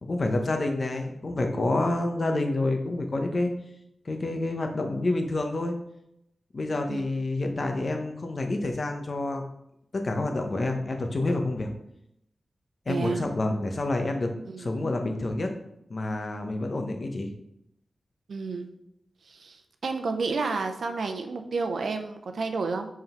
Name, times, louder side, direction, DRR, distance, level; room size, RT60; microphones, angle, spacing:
voice 1, 0.0-3.5 4.0-5.8 6.5-9.4 9.9-11.7 12.9-14.3 14.6-15.5 15.9-17.3, left 2 dB, 55° left, 4 dB, 0.9 m, -28 dB
voice 2, 12.9-13.2 14.5-14.7 18.3-18.7 19.3-19.6 19.8-22.9, right 4 dB, 80° right, 6 dB, 0.6 m, -30 dB
5.6 x 3.8 x 4.4 m, 0.79 s
cardioid pair, 50°, 0 cm